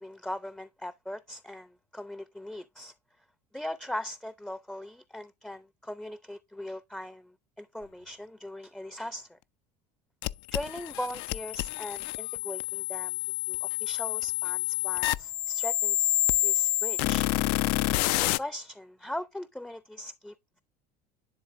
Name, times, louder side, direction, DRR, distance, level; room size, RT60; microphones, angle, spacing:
voice 1, 0.0-2.9 3.5-9.4 10.5-13.2 13.5-17.3 18.1-20.6, left 1 dB, 5° left, 0.5 m, -40 dB
sound 1, 10.2-18.4, left 18 dB, 60° left, 0.4 m, -28 dB
10.5 x 3.7 x 2.6 m
hypercardioid pair, 70°, 21 cm